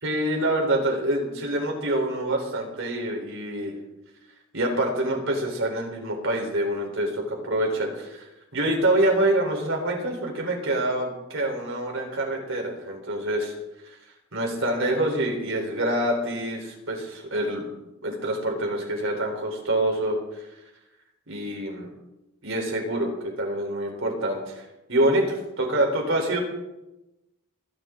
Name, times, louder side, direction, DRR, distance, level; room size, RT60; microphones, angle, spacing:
voice 1, 0.0-3.7 4.5-8.2 8.5-13.6 13.8-14.0 14.3-17.7 18.0-20.5 21.3-21.9 22.4-24.6 24.9-26.4, right 1 dB, 65° right, 1 dB, 3.9 m, -26 dB
27.5 x 10.5 x 3.8 m, 0.97 s
head